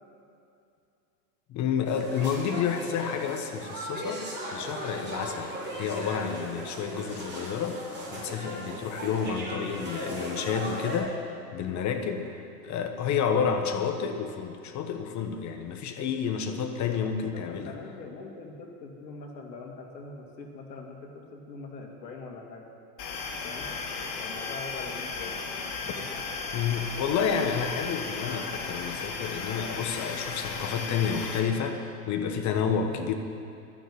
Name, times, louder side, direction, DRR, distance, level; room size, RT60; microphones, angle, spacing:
voice 1, 1.5-4.2 4.5-7.8 8.1-12.3 12.6-17.7 26.5-33.1, left 7 dB, 35° left, 5 dB, 1.3 m, -30 dB
sound 1, 1.8-11.0, right 1 dB, 20° right, 4.0 m, -38 dB
voice 2, 17.3-22.7 23.4-23.7 24.2-25.4 32.8-33.0, left 4 dB, 80° left, 2 dB, 2.3 m, -43 dB
sound 2, 23.0-31.4, left 4 dB, 60° left, 2.4 m, -35 dB
11.5 x 7.1 x 9.8 m, 2.6 s
hypercardioid pair, 105°, 50 cm